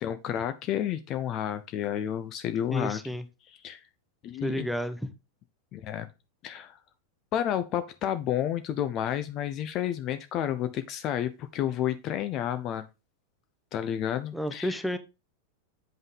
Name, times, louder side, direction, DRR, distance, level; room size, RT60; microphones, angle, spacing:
voice 1, 0.0-3.0 3.5-3.8 4.2-4.7 5.7-6.1 6.4-6.8 7.3-12.9 13.7-14.8, left 10 dB, 35° left, 0.6 m, -31 dB
voice 2, 2.7-3.2 4.4-5.1 14.3-15.0, equal, ahead, 0.9 m, -31 dB
8.0 x 5.5 x 3.4 m
figure-of-eight pair, 90°, 0 cm